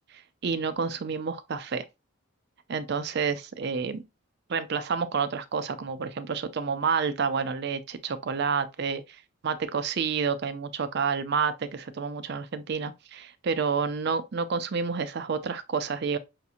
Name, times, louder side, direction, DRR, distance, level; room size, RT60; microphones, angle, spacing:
voice 1, 0.4-1.8 2.7-4.0 4.5-9.0 9.4-16.2, right 5 dB, 50° right, 0.4 m, -29 dB
5.8 x 2.8 x 2.4 m
head